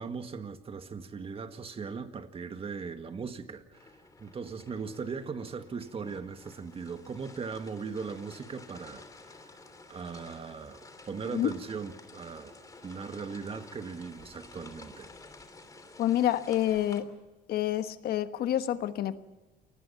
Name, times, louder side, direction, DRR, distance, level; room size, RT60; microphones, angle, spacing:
voice 1, 0.0-9.6 9.9-12.5 12.8-15.1, right 5 dB, 35° right, 1.9 m, -39 dB
sound 1, 3.7-17.0, left 3 dB, 20° left, 3.0 m, -52 dB
voice 2, 16.0-17.1 17.5-19.2, left 12 dB, 65° left, 1.3 m, -28 dB
28.5 x 19.5 x 5.7 m
cardioid pair, 110°, 17 cm